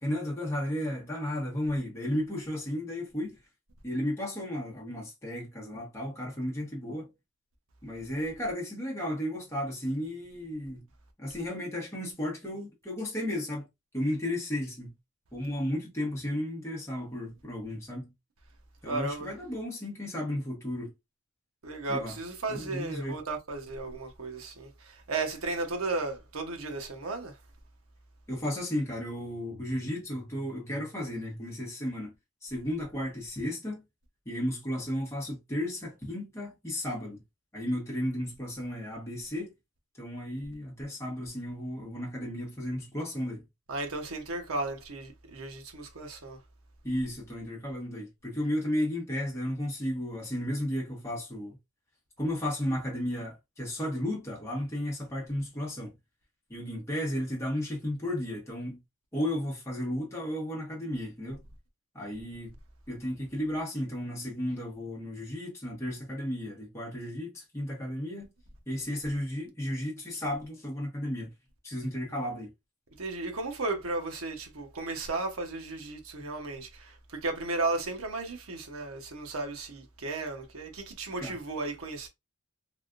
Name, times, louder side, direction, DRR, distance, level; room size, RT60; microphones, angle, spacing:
voice 1, 0.0-3.4 3.8-7.1 7.8-10.8 11.2-13.6 13.9-14.9 15.3-18.1 18.8-20.9 21.9-22.2 22.5-23.2 28.3-32.1 32.4-33.8 34.3-37.2 37.5-39.5 40.0-43.4 46.8-51.6 52.2-55.9 56.5-58.8 59.1-61.4 61.9-62.5 62.9-68.3 68.7-71.3 71.6-72.5 81.2-81.3, left 1 dB, 15° left, 1.0 m, -34 dB
voice 2, 18.9-19.3 21.6-27.3 43.7-46.4 73.0-82.1, right 3 dB, 85° right, 0.9 m, -34 dB
3.4 x 2.5 x 2.4 m
head